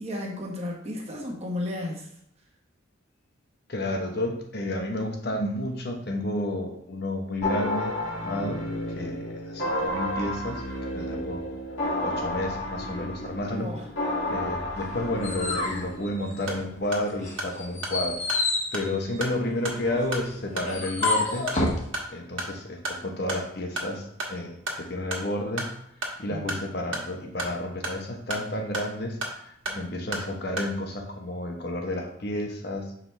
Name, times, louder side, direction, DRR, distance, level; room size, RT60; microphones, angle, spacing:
voice 1, 0.0-2.1 13.4-13.9 26.3-26.6, left 1 dB, 30° right, -1 dB, 1.3 m, -34 dB
voice 2, 3.7-8.6 8.9-10.6 10.9-11.4 12.0-13.7 14.3-18.2 18.7-21.5 22.1-25.7 26.2-29.2 29.4-32.9, left 1 dB, 50° left, 3 dB, 1.0 m, -31 dB
sound 1, 7.4-16.1, left 1 dB, 75° left, 2.2 m, -31 dB
sound 2, 14.8-16.8 17.2-21.8, left 2 dB, 35° left, 1.2 m, -30 dB
sound 3, 16.3-30.8, right 1 dB, 75° right, 1.4 m, -36 dB
7.6 x 5.0 x 3.3 m, 0.73 s
head